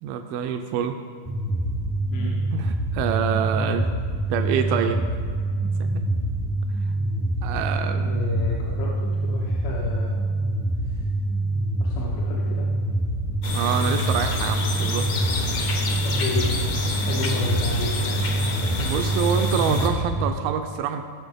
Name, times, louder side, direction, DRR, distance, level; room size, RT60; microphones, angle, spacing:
voice 1, 0.0-1.0 2.5-3.9 4.3-5.0 5.6-6.1 7.4-8.1 13.5-15.1 18.8-21.0, right 8 dB, 85° right, 5 dB, 2.4 m, -26 dB
sound 1, 1.3-20.3, right 1 dB, 10° left, 0.6 m, -26 dB
voice 2, 2.1-2.4 8.0-10.2 10.8-11.1 11.8-12.7 16.0-16.6 16.9-18.3, left 3 dB, 85° left, -4 dB, 3.1 m, -31 dB
sound 2, 13.4-19.9, left 3 dB, 70° left, 1.2 m, -29 dB
16.5 x 6.5 x 5.2 m, 2.1 s
omnidirectional pair, 4.1 m